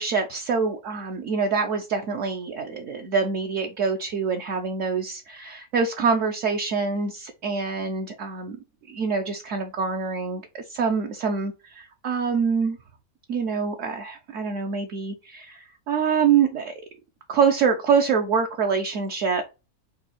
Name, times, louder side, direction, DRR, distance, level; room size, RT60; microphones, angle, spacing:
voice 1, 0.0-8.6 8.9-12.8 13.3-16.7 17.3-19.4, right 5 dB, 65° right, 3 dB, 1.0 m, -25 dB
5.3 x 2.3 x 4.1 m, 0.27 s
omnidirectional pair, 1.6 m